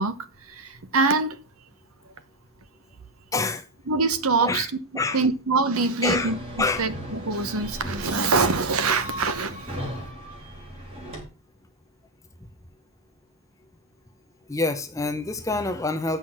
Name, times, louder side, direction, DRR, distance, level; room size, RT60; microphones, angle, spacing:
voice 1, 0.0-1.4 3.9-4.7 5.1-6.4 6.8-9.8, right 4 dB, 80° right, 1.1 m, -24 dB
voice 2, 3.3-3.7 4.4-4.7 4.9-5.2 6.0-6.3 6.6-6.9 14.5-16.2, left 3 dB, 15° left, 0.6 m, -26 dB
sound 1, 6.0-11.2, equal, 25° right, 2.6 m, -36 dB
8.3 x 6.1 x 5.9 m
head